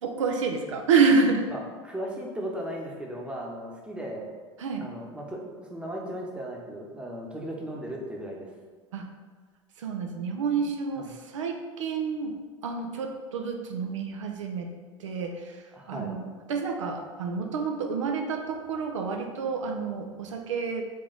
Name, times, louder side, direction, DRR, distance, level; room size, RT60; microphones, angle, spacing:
voice 1, 0.0-1.5 4.6-4.9 8.9-9.1 9.8-12.4 12.6-14.7 15.0-20.8, right 5 dB, 80° right, 3 dB, 0.5 m, -28 dB
voice 2, 1.5-4.3 4.8-8.5 11.0-11.1 15.7-16.2, equal, 5° right, -1 dB, 0.8 m, -36 dB
3.3 x 3.3 x 3.9 m, 1.4 s
hypercardioid pair, 85°, 16 cm